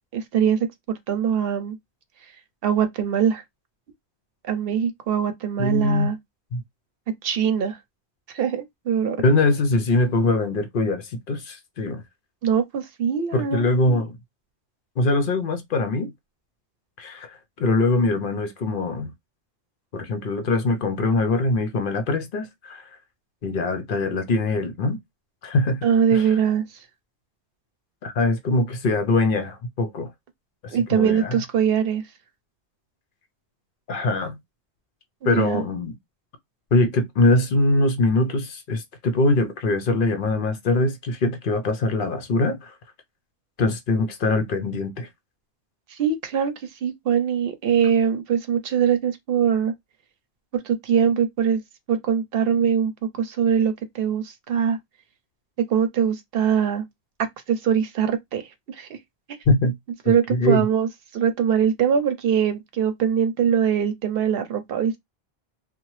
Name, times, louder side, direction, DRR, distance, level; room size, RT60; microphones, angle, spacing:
voice 1, 0.1-0.7 1.1-1.8 2.6-3.4 4.4-6.2 7.2-7.8 8.3-9.2 12.4-14.0 25.8-26.6 30.7-32.0 35.2-35.6 46.0-46.5 46.8-49.7 50.6-51.6 51.9-52.9 53.2-54.8 55.7-56.8 57.5-58.4 58.8-58.9 60.1-60.9 61.1-65.0, right 8 dB, 70° right, 0.8 m, -22 dB
voice 2, 5.6-6.1 6.5-6.6 9.2-12.0 13.3-14.2 15.0-16.1 17.0-19.1 19.9-22.9 23.4-25.0 25.4-25.9 26.1-26.3 28.0-30.1 30.6-31.4 33.9-34.4 35.2-36.0 36.7-42.7 43.6-45.1 59.5-59.8 60.3-60.7, left 2 dB, 60° left, 0.8 m, -22 dB
2.8 x 2.1 x 3.0 m
omnidirectional pair, 1.0 m